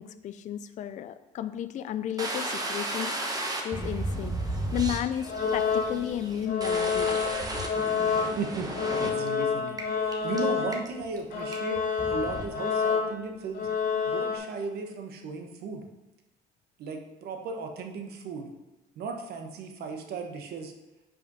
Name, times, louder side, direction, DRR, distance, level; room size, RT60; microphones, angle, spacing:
voice 1, 0.0-3.2 3.6-7.2 7.6-7.7, left 11 dB, 45° left, 12 dB, 0.4 m, -33 dB
sound 1, 2.2-9.3 9.8-9.9 10.1-10.4 10.7-11.2 11.5-11.6 12.0-12.5, right 2 dB, 20° right, 1.1 m, -34 dB
sound 2, 5.2-6.2 6.5-11.0 11.3-14.4, left 6 dB, 70° left, 1.7 m, -28 dB
voice 2, 8.4-11.8 12.1-13.7 14.0-15.9 16.8-18.5 19.0-20.7, right 4 dB, 70° right, 4 dB, 1.1 m, -36 dB
5.6 x 5.0 x 5.4 m, 1.0 s
cardioid pair, 110°, 17 cm